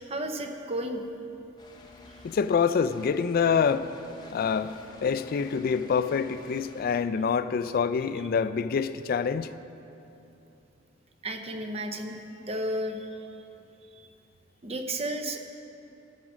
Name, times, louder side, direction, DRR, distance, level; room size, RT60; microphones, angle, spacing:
voice 1, 0.1-1.0 11.2-12.2 12.5-13.3 13.9-14.1 14.6-15.4, right 1 dB, 30° right, 0.6 m, -33 dB
sound 1, 1.6-7.0, left 3 dB, 20° left, 0.9 m, -49 dB
voice 2, 2.2-3.9 4.3-9.5, left 6 dB, 50° left, 0.3 m, -26 dB
12.0 x 6.1 x 6.1 m
head